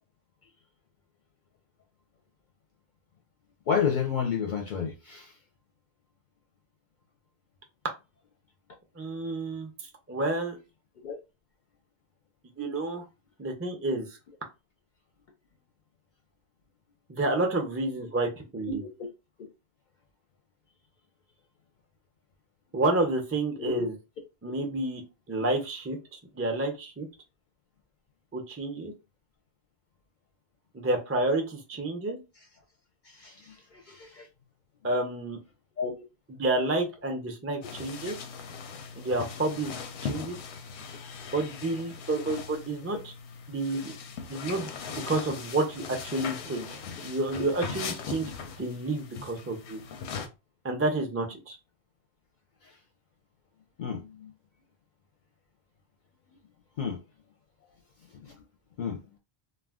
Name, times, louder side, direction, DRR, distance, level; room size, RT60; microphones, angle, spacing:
voice 1, 3.7-5.3 11.0-11.2 18.7-19.1 23.6-23.9 33.0-34.3 35.8-36.0 47.4-47.5 52.6-52.7 53.8-54.3 56.8-57.0 58.1-58.3 58.8-59.0, left 6 dB, 60° left, 0.6 m, -31 dB
voice 2, 9.0-9.7 10.1-10.6 12.6-13.0 13.4-14.1 17.1-18.8 22.7-23.9 24.4-25.0 25.3-27.1 28.3-28.9 30.7-32.2 34.8-35.4 36.3-38.2 39.0-39.8 40.0-40.4 41.3-43.1 43.5-43.9 44.3-44.7 45.1-46.7 47.0-48.2 48.6-49.8 50.6-51.6, right 2 dB, 20° right, 0.3 m, -29 dB
sound 1, 37.6-50.3, left 5 dB, 90° left, 0.9 m, -39 dB
2.4 x 2.2 x 3.4 m
omnidirectional pair, 1.1 m